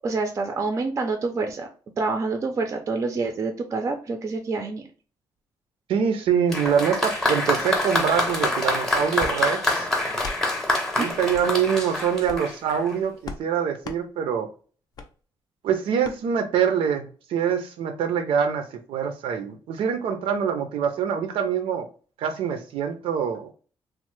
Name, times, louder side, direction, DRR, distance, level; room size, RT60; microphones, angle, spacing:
voice 1, 0.0-1.7 2.0-4.9 11.0-11.1, right 3 dB, 35° right, 0.4 m, -27 dB
voice 2, 5.9-9.9 11.0-14.5 15.6-21.9 22.2-23.5, right 7 dB, 85° right, 0.5 m, -25 dB
Applause, 6.5-12.9, left 2 dB, 5° left, 0.7 m, -26 dB
sound 1, 9.2-9.4 10.1-10.4 11.3-11.5 12.2-12.5 13.2-13.4 13.8-14.0 14.9-15.1 16.0-16.2, left 4 dB, 45° left, 0.4 m, -36 dB
3.1 x 2.0 x 3.0 m
cardioid pair, 160°, 9 cm